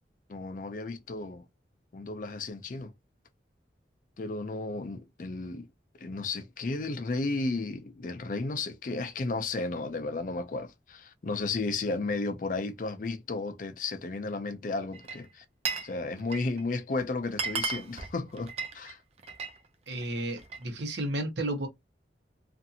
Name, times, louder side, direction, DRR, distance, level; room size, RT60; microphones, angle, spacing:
voice 1, 0.3-1.4 1.9-2.9 4.2-5.7 6.0-15.4 15.8-19.0, left 3 dB, 50° left, 0.4 m, -33 dB
Glass, 14.9-15.9 16.2-16.6 17.0-17.1 17.3-19.6 19.9-20.7, right 5 dB, 35° right, 0.4 m, -35 dB
voice 2, 19.9-21.7, right 1 dB, 80° right, 0.9 m, -32 dB
2.5 x 2.4 x 2.7 m
head